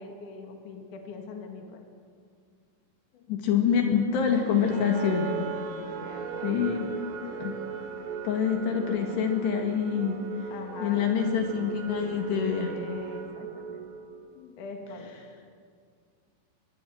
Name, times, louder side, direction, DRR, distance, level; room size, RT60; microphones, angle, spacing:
voice 1, 0.0-1.8 3.1-3.3 4.6-5.1 5.4-7.5 10.5-11.5 12.6-13.8 14.4-15.1, left 4 dB, 50° left, 4 dB, 3.0 m, -43 dB
voice 2, 3.3-5.4 6.4-6.8 7.4-7.5 8.2-10.2 10.8-12.7, left 7 dB, 65° left, 3 dB, 3.7 m, -26 dB
sound 1, 4.2-14.4, right 6 dB, 80° right, 4.3 m, -37 dB
24.5 x 20.5 x 7.7 m, 2.1 s
omnidirectional pair, 5.5 m